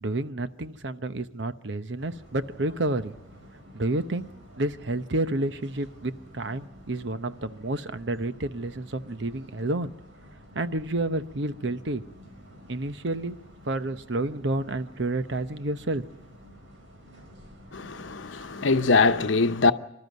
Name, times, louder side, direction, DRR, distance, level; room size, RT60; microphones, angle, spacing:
voice 1, 0.0-3.1 3.7-4.3 4.6-9.9 10.5-12.0 12.7-13.4 13.6-16.0, right 2 dB, 70° right, 0.9 m, -30 dB
sound 1, 2.0-19.2, equal, 85° right, 5.7 m, -50 dB
voice 2, 17.7-19.7, left 3 dB, 80° left, 0.9 m, -22 dB
26.0 x 13.0 x 9.3 m
head